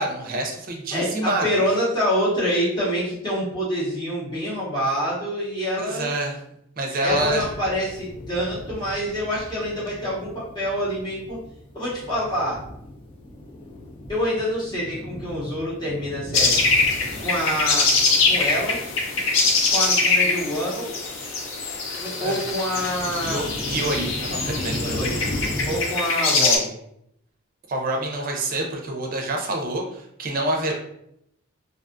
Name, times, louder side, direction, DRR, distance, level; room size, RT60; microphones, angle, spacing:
voice 1, 0.0-1.4 5.8-6.4 6.8-7.5 22.2-22.4 23.2-25.0 27.7-30.7, right 2 dB, 40° right, 1 dB, 0.5 m, -27 dB
voice 2, 0.9-6.1 7.0-11.4 11.7-12.6 14.1-16.6 17.2-17.9 18.2-18.8 19.7-20.9 22.0-23.8 24.7-25.2 25.7-26.7, equal, 20° left, -9 dB, 0.8 m, -26 dB
sound 1, 7.1-25.8, left 1 dB, 80° left, 1.0 m, -37 dB
sound 2, 16.3-26.6, left 3 dB, 60° left, 0.5 m, -23 dB
2.5 x 2.3 x 2.5 m, 0.76 s
head